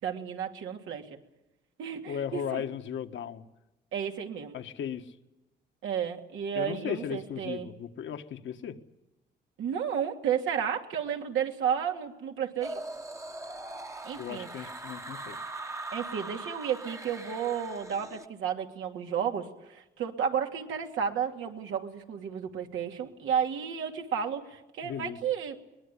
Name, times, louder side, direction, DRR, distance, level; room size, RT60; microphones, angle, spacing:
voice 1, 0.0-1.1 1.8-2.6 3.9-4.6 5.8-7.7 9.6-12.8 14.0-14.7 15.9-25.6, right 8 dB, 80° right, 3 dB, 2.7 m, -32 dB
voice 2, 2.1-3.4 4.5-5.2 6.5-8.8 14.1-15.4 24.8-25.2, left 8 dB, 70° left, 7 dB, 1.6 m, -36 dB
sound 1, 12.6-18.3, right 2 dB, 15° right, 1.2 m, -41 dB
22.5 x 21.0 x 8.5 m, 0.96 s
cardioid pair, 90°, 20 cm